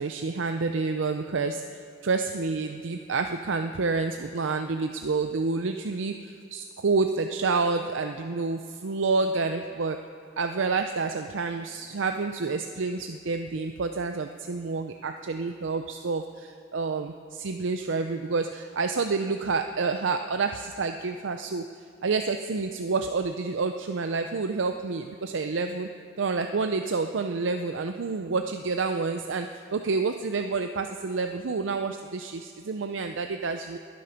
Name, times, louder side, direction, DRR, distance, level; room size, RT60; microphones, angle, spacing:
voice 1, 0.0-1.7 2.0-10.1 10.4-21.7 22.0-25.9 26.2-33.8, right 4 dB, 75° right, 7 dB, 0.6 m, -28 dB
20.5 x 8.5 x 5.8 m, 2.4 s
head